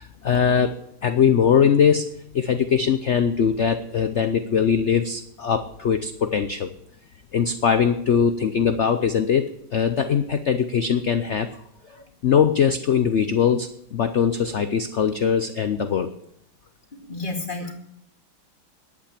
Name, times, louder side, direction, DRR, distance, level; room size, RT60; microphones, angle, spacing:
voice 1, 0.0-2.1 2.3-6.7 7.3-11.6 12.2-16.1, left 7 dB, 90° left, 10 dB, 0.6 m, -21 dB
voice 2, 17.1-17.7, left 2 dB, 25° left, 2 dB, 2.2 m, -31 dB
11.0 x 8.5 x 8.7 m, 0.72 s
omnidirectional pair, 2.1 m